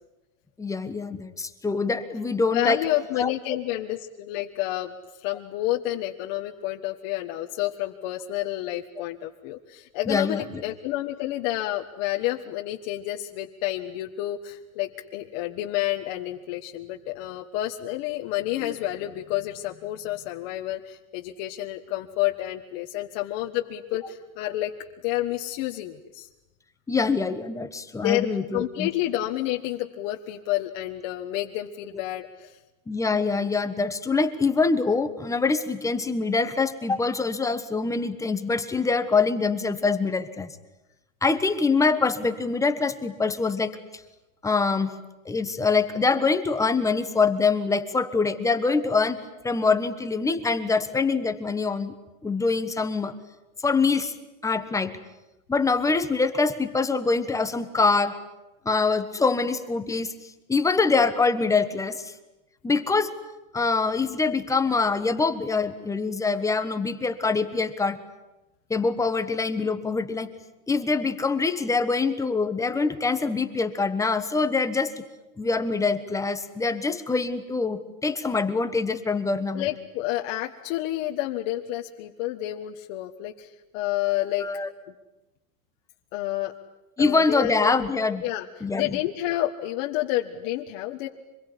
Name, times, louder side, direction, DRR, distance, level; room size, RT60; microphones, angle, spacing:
voice 1, 0.6-2.8 3.2-3.3 10.1-10.4 18.6-18.7 26.9-28.9 32.9-40.5 41.2-43.8 44.4-44.9 45.2-49.2 49.4-51.9 52.2-53.1 53.6-54.1 54.4-54.9 55.5-58.2 58.6-60.1 60.5-62.1 62.6-63.1 63.5-68.0 68.7-70.3 70.7-75.0 75.4-79.7 84.4-84.7 87.0-88.2 88.6-89.0, left 4 dB, 5° left, 9 dB, 1.3 m, -24 dB
voice 2, 2.5-4.9 5.2-24.7 25.0-26.3 28.0-28.3 28.5-32.5 79.5-84.5 86.1-86.5 87.0-87.7 88.2-88.4 88.7-91.1, left 15 dB, 40° left, 1 dB, 1.5 m, -29 dB
26.0 x 22.0 x 10.0 m, 0.97 s
supercardioid pair, 155°, 42 cm